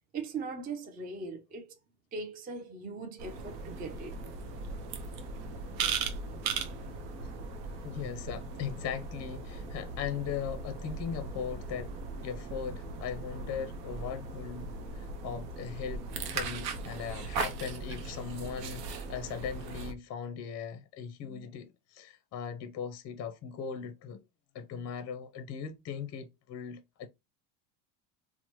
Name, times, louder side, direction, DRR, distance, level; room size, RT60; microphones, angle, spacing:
voice 1, 0.1-1.8 2.1-4.2, right 4 dB, 20° right, 0.4 m, -40 dB
sound 1, 3.2-19.9, right 4 dB, 90° right, 0.7 m, -38 dB
voice 2, 7.8-12.0 12.2-16.1 16.3-24.2 24.5-27.1, left 7 dB, 35° left, 0.5 m, -39 dB
2.9 x 2.1 x 2.9 m
supercardioid pair, 100°, 48 cm